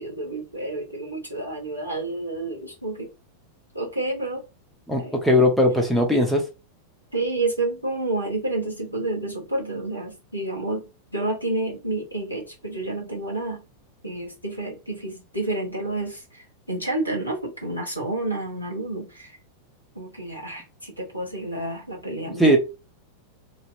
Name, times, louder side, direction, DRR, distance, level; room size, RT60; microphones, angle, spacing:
voice 1, 0.0-3.1 3.7-4.4 5.0-5.2 7.1-10.8 11.1-13.6 14.0-19.4 19.9-22.6, right 2 dB, 85° left, 1.0 m, -29 dB
voice 2, 4.9-6.4 22.4-22.6, equal, ahead, 1.1 m, -19 dB
3.1 x 2.8 x 2.7 m
figure-of-eight pair, 90°, 0 cm